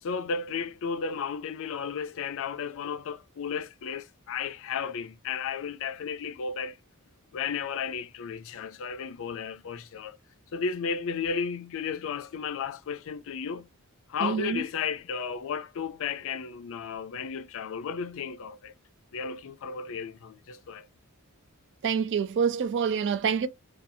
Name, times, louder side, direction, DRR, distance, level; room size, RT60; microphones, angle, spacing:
voice 1, 0.0-6.8 7.3-10.2 10.5-13.7 14.1-18.7 19.1-20.9, left 6 dB, 65° left, 0.4 m, -34 dB
voice 2, 14.2-14.6 21.8-23.5, right 6 dB, 55° right, 0.4 m, -26 dB
2.6 x 2.3 x 2.6 m
head